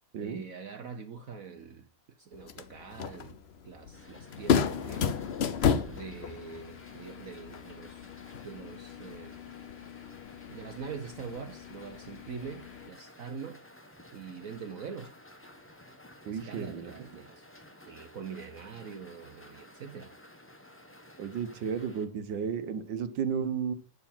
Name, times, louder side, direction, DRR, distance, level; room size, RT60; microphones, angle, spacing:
voice 1, 0.2-1.9 2.2-3.4 3.6-5.1 5.9-8.1 8.4-9.4 10.5-13.6 14.1-15.1 16.2-17.4 17.9-20.1, right 6 dB, 55° right, 1.1 m, -44 dB
sound 1, 2.3-12.9, left 7 dB, 70° left, 0.6 m, -34 dB
sound 2, 3.9-22.0, left 1 dB, 10° left, 1.0 m, -54 dB
voice 2, 16.2-17.1 21.2-23.7, right 7 dB, 75° right, 1.7 m, -33 dB
9.5 x 6.8 x 5.6 m
omnidirectional pair, 2.0 m